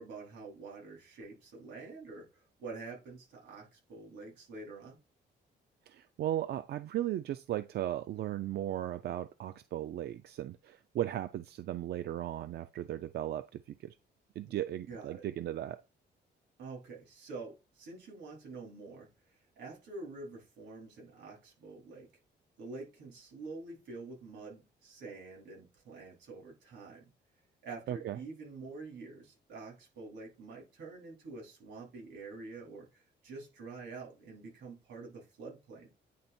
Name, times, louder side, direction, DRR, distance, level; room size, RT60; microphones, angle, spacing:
voice 1, 0.0-5.0 14.5-14.6 14.9-15.3 16.6-22.1 22.6-27.1 27.6-35.9, right 3 dB, 90° right, 4.0 m, -47 dB
voice 2, 5.9-14.0 14.4-15.8 27.9-28.2, right 12 dB, 65° right, 0.5 m, -36 dB
9.3 x 3.5 x 4.3 m
cardioid pair, 145°, 18 cm